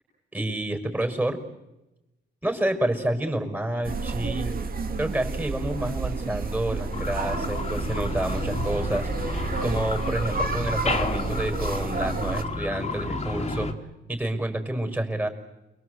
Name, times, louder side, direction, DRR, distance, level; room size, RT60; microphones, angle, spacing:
voice 1, 0.3-1.4 2.4-4.6 5.0-9.1 9.6-13.7 14.1-15.3, right 1 dB, 10° right, 5 dB, 5.6 m, -29 dB
sound 1, 3.8-12.4, right 4 dB, 45° right, 2.9 m, -30 dB
sound 2, 6.9-13.7, left 3 dB, 35° left, 3.1 m, -31 dB
29.0 x 23.0 x 8.1 m, 0.98 s
cardioid pair, 90°, 20 cm